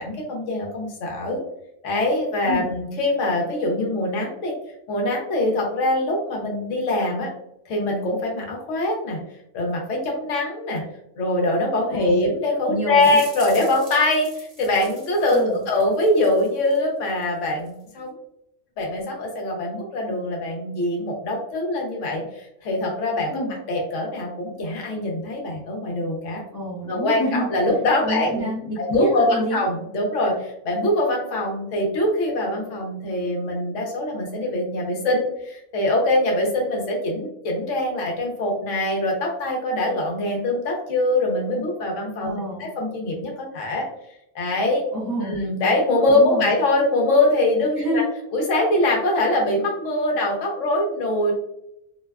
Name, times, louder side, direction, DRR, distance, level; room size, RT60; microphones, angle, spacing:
voice 1, 0.0-1.4 1.8-4.5 4.9-7.3 7.7-9.2 9.5-10.8 11.2-18.1 18.8-23.4 23.7-26.4 26.9-28.5 28.8-42.3 42.6-43.9 44.3-44.8 45.3-48.0 48.3-51.3, left 1 dB, 75° left, -1 dB, 1.0 m, -23 dB
voice 2, 11.9-12.3 12.7-13.2 15.3-15.6 23.3-23.6 26.5-27.5 28.0-29.6 42.2-42.7 44.9-45.4 46.1-46.5 47.8-48.0, equal, 30° left, -6 dB, 0.3 m, -27 dB
sound 1, 13.0-16.8 17.1-17.9, right 1 dB, 35° right, 0.9 m, -44 dB
2.6 x 2.2 x 2.2 m, 0.80 s
omnidirectional pair, 1.3 m